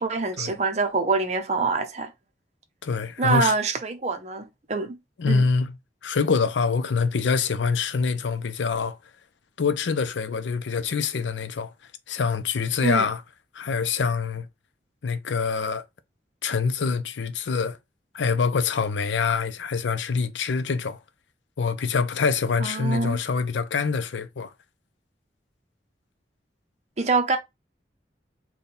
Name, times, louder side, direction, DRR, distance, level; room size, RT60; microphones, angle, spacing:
voice 1, 0.0-2.1 3.2-5.0 5.3-5.4 12.8-13.1 22.6-23.2 27.0-27.4, right 3 dB, 40° right, 0.6 m, -25 dB
voice 2, 2.8-3.5 5.2-5.8 6.0-9.0 9.6-11.7 12.1-13.2 13.5-14.5 15.0-15.8 16.4-17.8 18.1-21.0 21.6-24.5, left 5 dB, 85° left, 0.5 m, -25 dB
3.5 x 2.3 x 4.1 m
head